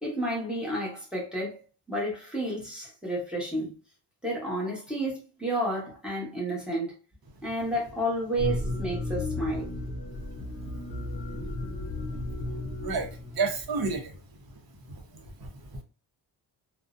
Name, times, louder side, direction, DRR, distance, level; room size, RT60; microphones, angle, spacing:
voice 1, 0.0-1.6 1.9-3.8 4.2-6.9 7.4-9.8, right 1 dB, ahead, 0.9 m, -31 dB
sound 1, 8.4-13.7, left 2 dB, 55° left, 0.6 m, -34 dB
voice 2, 12.5-14.2 14.8-15.8, right 4 dB, 55° right, 0.7 m, -33 dB
2.5 x 2.0 x 2.4 m
wide cardioid pair, 170°, 44 cm